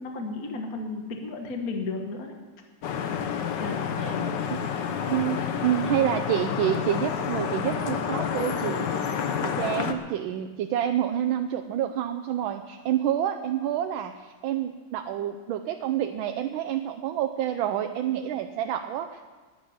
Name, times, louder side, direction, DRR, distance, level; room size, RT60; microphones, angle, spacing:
voice 1, 0.0-2.3 3.6-4.4 5.3-5.4, left 3 dB, 45° left, 3 dB, 1.8 m, -34 dB
Vehicle horn car horn honking / Traffic noise roadway noise, 2.8-9.9, left 7 dB, 65° left, 1.5 m, -29 dB
voice 2, 5.1-8.9 9.4-19.3, right 11 dB, 80° right, 6 dB, 1.4 m, -28 dB
11.0 x 10.5 x 9.4 m, 1.3 s
omnidirectional pair, 2.2 m